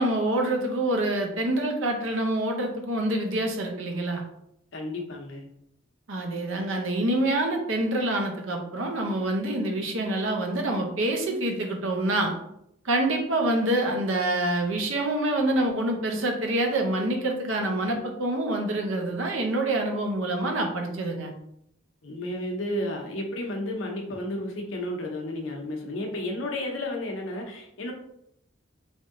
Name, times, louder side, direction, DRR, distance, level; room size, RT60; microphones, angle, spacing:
voice 1, 0.0-4.2 6.1-12.3 12.8-21.3, right 1 dB, 70° right, 3 dB, 0.7 m, -26 dB
voice 2, 4.7-5.4 22.0-27.9, left 1 dB, 70° left, 1 dB, 0.8 m, -32 dB
3.5 x 2.7 x 3.6 m, 0.77 s
head